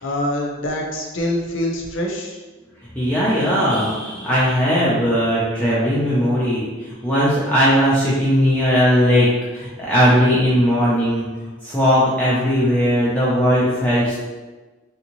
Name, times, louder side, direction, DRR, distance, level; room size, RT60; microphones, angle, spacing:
voice 1, 0.0-2.4, left 1 dB, 60° left, 1 dB, 0.6 m, -25 dB
voice 2, 2.9-11.3 11.6-14.2, equal, 5° left, -8 dB, 0.5 m, -18 dB
3.4 x 2.7 x 3.0 m, 1.3 s
head